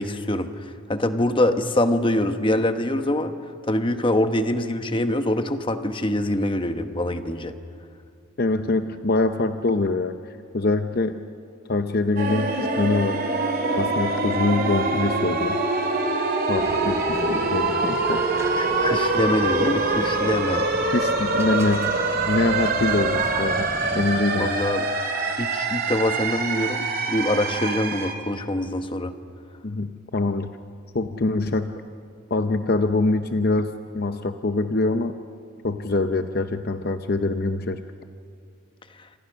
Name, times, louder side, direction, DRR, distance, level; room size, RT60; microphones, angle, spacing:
voice 1, 0.0-3.3 3.7-7.5 18.6-20.6 24.4-24.9 25.4-29.1, left 1 dB, 25° left, 8 dB, 1.0 m, -24 dB
voice 2, 8.4-10.2 10.5-11.2 11.7-13.2 13.8-15.6 16.5-18.3 20.8-21.9 22.2-24.6 29.6-30.5 30.9-31.8 32.3-35.1 35.6-37.8, left 2 dB, 45° left, 9 dB, 0.7 m, -24 dB
sound 1, 12.2-28.1, right 3 dB, 45° right, 2.6 m, -24 dB
sound 2, 16.6-24.2, right 1 dB, 15° right, 0.7 m, -36 dB
27.5 x 27.0 x 6.3 m, 2.4 s
head